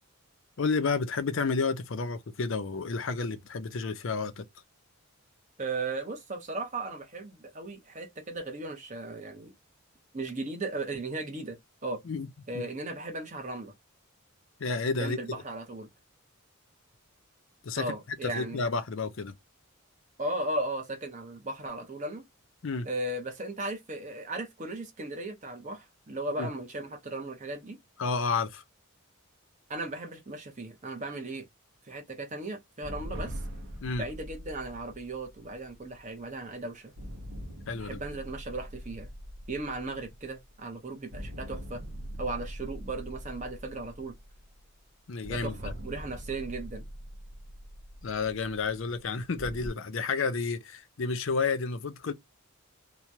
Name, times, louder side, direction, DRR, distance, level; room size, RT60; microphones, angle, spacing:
voice 1, 0.6-4.5 12.0-12.3 12.5-12.7 14.6-15.2 17.6-17.9 18.3-19.3 22.6-22.9 26.4-26.5 28.0-28.6 33.8-34.1 37.7-38.0 45.1-45.6 48.0-52.1, left 4 dB, 60° left, 0.5 m, -31 dB
voice 2, 5.6-9.5 10.1-12.0 12.5-13.7 15.0-15.9 17.8-18.6 20.2-22.2 22.8-27.8 29.7-31.4 31.8-33.4 34.0-36.9 37.8-39.1 39.5-41.8 42.2-44.2 45.3-46.9, right 2 dB, 35° right, 0.9 m, -36 dB
sound 1, 32.8-36.4 37.0-40.8 41.1-44.7 45.2-49.7, equal, 65° right, 0.8 m, -42 dB
2.9 x 2.3 x 2.7 m
head